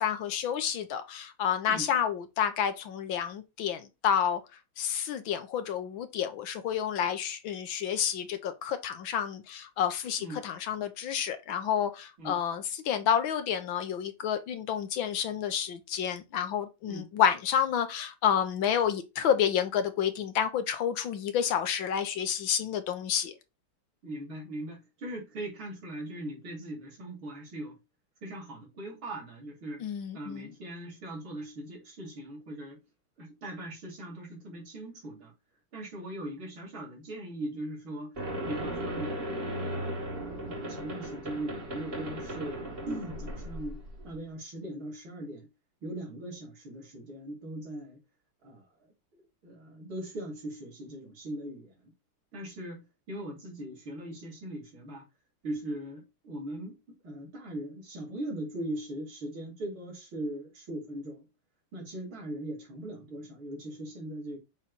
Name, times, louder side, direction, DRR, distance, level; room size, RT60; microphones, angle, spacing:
voice 1, 0.0-4.4 4.8-23.3 29.8-30.5, left 8 dB, 70° left, 1.6 m, -29 dB
voice 2, 24.0-27.8 28.2-29.8 30.1-32.8 33.2-35.3 35.7-38.2 38.5-39.2 39.6-45.5 45.8-48.0 48.4-48.6 49.1-51.9 52.3-55.0 55.4-61.3 61.7-64.4, right 1 dB, 65° right, 3.6 m, -40 dB
sound 1, 38.2-44.2, right 1 dB, 30° right, 1.4 m, -36 dB
7.4 x 3.2 x 4.1 m
omnidirectional pair, 2.4 m